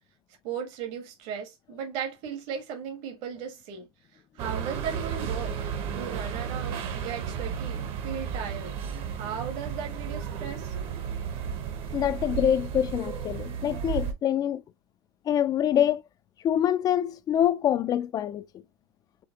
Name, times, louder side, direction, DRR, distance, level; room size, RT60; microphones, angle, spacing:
voice 1, 0.4-5.6 5.9-8.8 9.2-10.7, right 7 dB, 55° right, 1.6 m, -36 dB
sound 1, 4.4-14.1, right 7 dB, 40° right, 1.0 m, -33 dB
voice 2, 11.9-14.6 15.3-16.0 16.4-18.4, left 10 dB, 25° left, 0.4 m, -25 dB
5.1 x 3.4 x 2.8 m
supercardioid pair, 145°, 14 cm